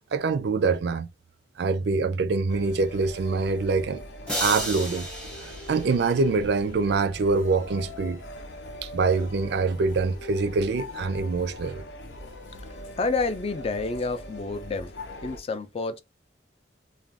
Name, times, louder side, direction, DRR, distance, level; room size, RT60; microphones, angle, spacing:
voice 1, 0.1-1.1 1.6-4.0 4.4-5.1 5.7-8.2 8.8-11.8, right 4 dB, 65° right, 0.4 m, -25 dB
sound 1, 2.5-15.4, left 1 dB, 80° left, 0.7 m, -41 dB
sound 2, 4.3-6.5, equal, 5° left, 0.8 m, -33 dB
voice 2, 12.7-14.9 15.2-16.0, left 3 dB, 30° left, 0.3 m, -29 dB
2.4 x 2.2 x 3.3 m
head